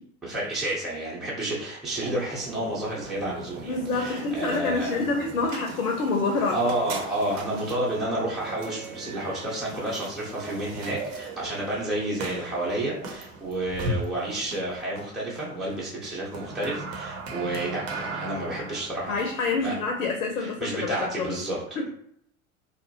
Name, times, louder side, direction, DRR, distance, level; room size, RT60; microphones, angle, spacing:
voice 1, 0.2-5.1 6.5-19.3 19.6-19.8 20.4-21.6, right 1 dB, ahead, -6 dB, 0.7 m, -30 dB
sound 1, 1.9-20.9, right 3 dB, 60° right, 0.8 m, -38 dB
voice 2, 3.6-6.7 19.1-21.4 21.8-21.9, left 3 dB, 80° left, 2 dB, 0.6 m, -27 dB
2.7 x 2.2 x 2.7 m, 0.71 s
figure-of-eight pair, 75°, 42 cm